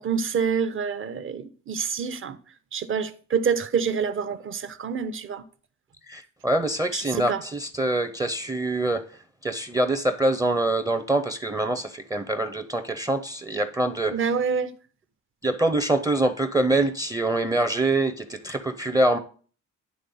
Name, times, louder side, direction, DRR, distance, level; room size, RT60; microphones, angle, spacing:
voice 1, 0.0-2.4 2.7-5.4 6.9-7.4 14.1-14.7, right 6 dB, 45° right, 0.8 m, -27 dB
voice 2, 6.1-14.3 15.4-19.2, right 2 dB, 10° right, 0.6 m, -25 dB
9.9 x 3.4 x 5.5 m
cardioid pair, 90°, 30 cm